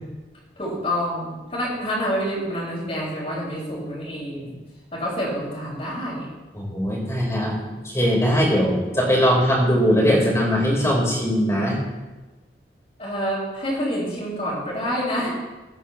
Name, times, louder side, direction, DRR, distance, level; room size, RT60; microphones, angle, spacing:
voice 1, 0.6-4.6 4.9-6.4 13.0-15.3, equal, 35° left, -11 dB, 6.4 m, -27 dB
voice 2, 6.5-7.6 7.8-11.8, equal, 15° left, -3 dB, 5.4 m, -20 dB
24.0 x 11.0 x 3.5 m, 1.1 s
head